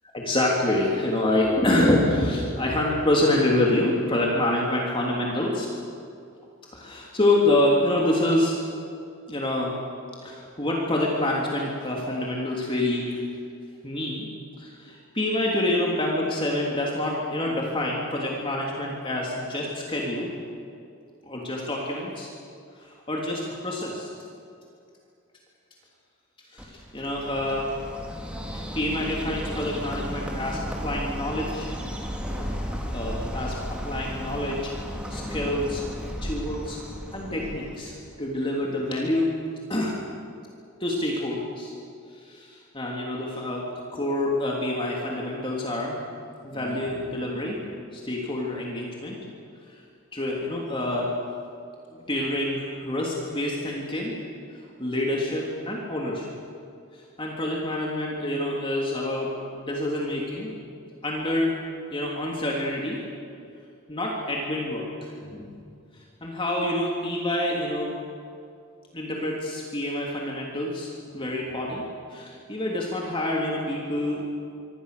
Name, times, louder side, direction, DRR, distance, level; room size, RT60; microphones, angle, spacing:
voice 1, 0.1-5.7 6.7-8.6 9.3-9.8 10.2-13.2 13.8-14.3 14.6-20.3 21.2-22.3 22.8-24.1 26.5-27.7 28.5-31.8 32.9-34.7 35.1-35.8 36.2-39.3 39.7-40.0 40.8-41.7 42.1-46.0 46.4-47.6 47.9-49.2 49.7-49.8 50.1-51.1 51.9-54.1 54.8-56.3 56.9-60.5 61.0-61.6 61.9-63.0 63.9-65.5 66.2-67.9 68.9-74.2, left 1 dB, 25° left, -2 dB, 3.1 m, -27 dB
Bird, 26.6-38.0, equal, 5° right, 3.2 m, -34 dB
25.5 x 25.5 x 6.8 m, 2.4 s
head